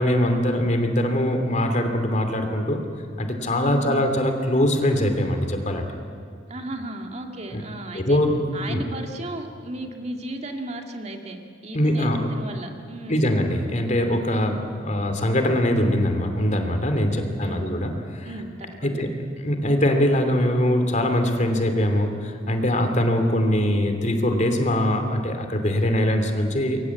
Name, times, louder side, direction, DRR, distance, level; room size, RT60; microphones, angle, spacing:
voice 1, 0.0-2.8 3.2-5.9 7.5-7.6 7.9-8.4 8.7-8.8 11.7-12.2 13.1-14.6 14.8-18.3 18.8-19.1 19.4-26.8, left 1 dB, 40° left, 6 dB, 2.9 m, -22 dB
voice 2, 3.6-4.0 6.5-8.2 8.5-13.3 14.8-15.1 17.0-17.8 18.2-19.0 22.8-23.1, right 1 dB, 35° right, 3 dB, 2.2 m, -35 dB
28.0 x 23.5 x 8.6 m, 2.2 s
head